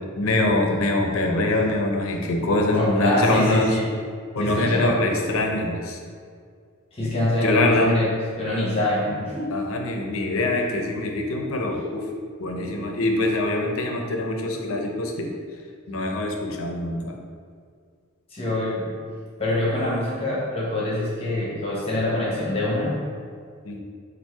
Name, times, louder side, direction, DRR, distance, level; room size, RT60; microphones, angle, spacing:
voice 1, 0.0-3.8 4.3-6.0 7.4-8.0 9.1-9.2 9.5-12.1 12.4-15.3 15.9-17.2 23.6-23.8, left 2 dB, 80° left, 2 dB, 0.6 m, -24 dB
voice 2, 2.7-3.9 4.4-5.0 6.9-9.5 16.4-16.5 18.3-18.9 19.4-23.0, left 1 dB, 30° left, -6 dB, 1.0 m, -25 dB
4.4 x 2.5 x 4.4 m, 2.1 s
head